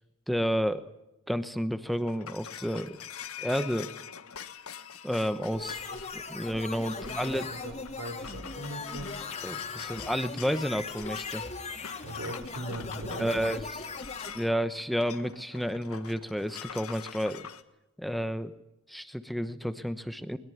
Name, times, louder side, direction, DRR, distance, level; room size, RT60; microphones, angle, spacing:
voice 1, 0.3-0.8 1.3-3.0 3.4-3.9 5.0-5.8 6.1-7.5 9.4-11.4 13.2-13.6 14.3-17.5 18.0-18.5 18.9-20.4, equal, ahead, 10 dB, 0.9 m, -31 dB
sound 1, 1.6-17.6, left 8 dB, 85° left, 1.5 m, -44 dB
sound 2, 5.5-14.3, left 4 dB, 30° left, 3.0 m, -39 dB
voice 2, 6.9-9.1 12.0-13.6, right 1 dB, 75° right, 7 dB, 4.8 m, -40 dB
21.5 x 21.5 x 9.3 m, 0.92 s
head